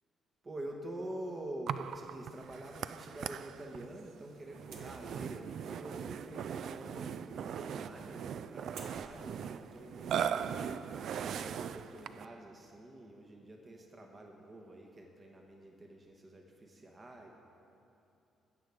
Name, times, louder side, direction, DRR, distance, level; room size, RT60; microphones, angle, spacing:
voice 1, 0.4-10.7 11.2-17.3, right 1 dB, 30° right, 1 dB, 1.2 m, -47 dB
Burping eructation, 1.7-12.4, right 8 dB, 70° right, 0.3 m, -39 dB
sound 1, 4.5-11.3, right 3 dB, 85° right, 1.3 m, -59 dB
15.5 x 6.8 x 4.8 m, 2.8 s
cardioid pair, 90°, 0 cm